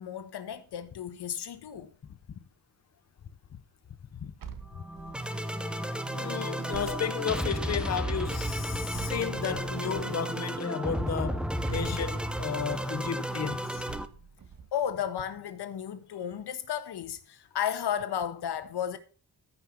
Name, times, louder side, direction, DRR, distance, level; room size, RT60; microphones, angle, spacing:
voice 1, 0.0-1.9 14.7-19.0, left 9 dB, 90° left, 1.4 m, -33 dB
sound 1, 4.4-5.4 6.7-7.7 8.9-9.9 11.7-12.5 13.9-14.7, right 7 dB, 55° right, 1.4 m, -45 dB
sound 2, 4.7-14.1, right 1 dB, ahead, 0.8 m, -33 dB
voice 2, 6.0-13.9, left 8 dB, 40° left, 0.7 m, -33 dB
14.0 x 5.7 x 5.9 m
wide cardioid pair, 145°, 39 cm